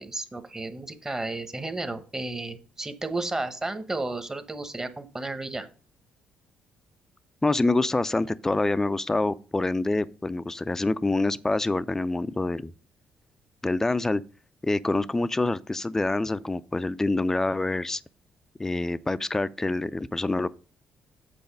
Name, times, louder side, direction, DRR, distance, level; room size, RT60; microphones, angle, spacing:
voice 1, 0.0-5.7, right 2 dB, 15° right, 1.0 m, -33 dB
voice 2, 7.4-12.7 13.6-14.2 14.6-18.0 18.6-20.5, left 2 dB, 15° left, 0.4 m, -26 dB
7.9 x 4.1 x 5.3 m
cardioid pair, 90°, 3 cm